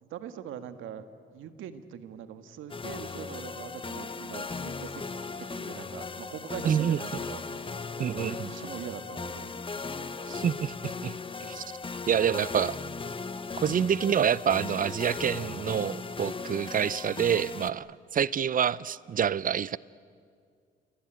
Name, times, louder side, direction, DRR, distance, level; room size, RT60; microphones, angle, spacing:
voice 1, 0.0-5.1 5.4-10.3, right 9 dB, 85° right, 10 dB, 1.7 m, -43 dB
sound 1, 2.7-17.7, left 4 dB, 25° left, 1.2 m, -37 dB
voice 2, 6.6-7.0 8.0-8.5 10.3-11.1 11.5-11.6 12.1-12.8 13.6-17.9 18.1-19.8, right 8 dB, 45° right, 20 dB, 0.6 m, -27 dB
29.0 x 22.5 x 9.1 m, 2.2 s
cardioid pair, 90°, 20 cm